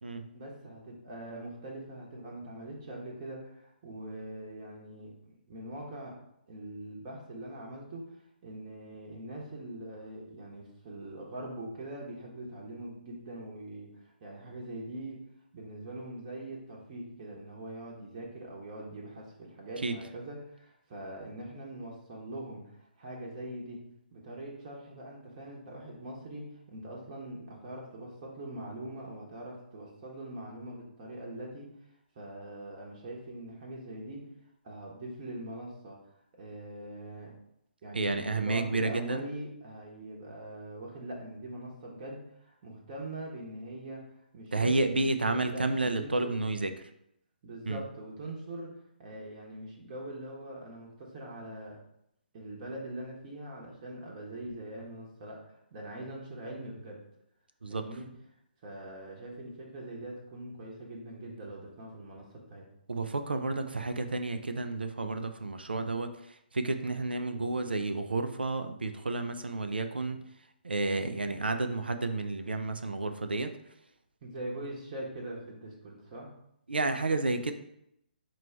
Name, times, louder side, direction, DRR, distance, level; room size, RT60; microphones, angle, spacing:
voice 1, 0.3-6.1 6.5-8.1 8.4-15.2 15.5-23.8 24.1-31.7 32.1-34.2 34.6-36.0 36.3-37.3 37.8-44.0 44.3-46.5 47.4-48.7 49.0-51.8 52.3-57.0 57.7-58.1 58.6-62.7 74.2-76.3, right 1 dB, 30° right, -2 dB, 1.0 m, -42 dB
voice 2, 37.9-39.2 44.5-46.9 47.7-47.8 57.6-58.0 62.9-70.3 70.6-73.7 76.7-77.5, right 2 dB, 70° right, 8 dB, 0.5 m, -31 dB
4.9 x 2.3 x 4.4 m, 0.78 s
figure-of-eight pair, 135°, 6 cm